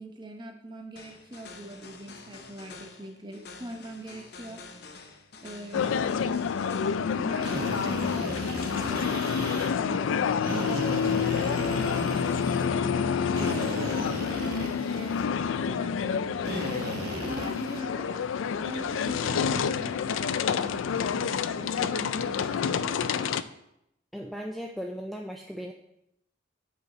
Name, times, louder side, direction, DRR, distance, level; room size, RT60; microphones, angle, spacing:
voice 1, 0.0-4.8 5.4-6.0 7.1-7.6 8.5-10.4 11.5-12.9 13.3-14.0 14.4-15.2 15.5-23.4, equal, 25° right, 3 dB, 0.9 m, -42 dB
sound 1, 1.0-9.0, left 4 dB, 55° left, 0.7 m, -47 dB
sound 2, 5.7-23.4, left 6 dB, 90° left, 0.3 m, -28 dB
Drill, 7.4-9.7 10.4-12.7 13.3-15.2 16.4-17.8, right 1 dB, 50° right, 1.0 m, -36 dB
voice 2, 24.1-25.7, equal, ahead, 2 dB, 0.3 m, -37 dB
8.0 x 5.5 x 4.2 m, 0.82 s
head